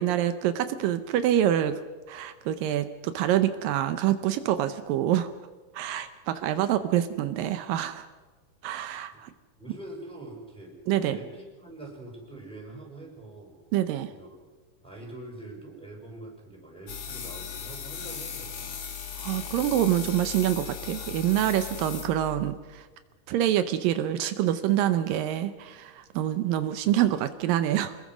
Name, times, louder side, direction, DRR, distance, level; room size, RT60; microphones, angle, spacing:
voice 1, 0.0-1.8 2.1-5.3 5.7-8.1 8.6-9.3 10.9-11.2 13.7-14.1 19.2-22.9 23.3-28.0, right 12 dB, 80° right, 11 dB, 2.5 m, -26 dB
voice 2, 9.6-10.8 11.1-13.6 14.1-14.4 14.8-18.7, right 2 dB, ahead, 0 dB, 5.9 m, -44 dB
sound 1, 16.9-22.5, left 8 dB, 50° left, 2.9 m, -37 dB
26.5 x 21.0 x 6.2 m, 1.3 s
omnidirectional pair, 4.0 m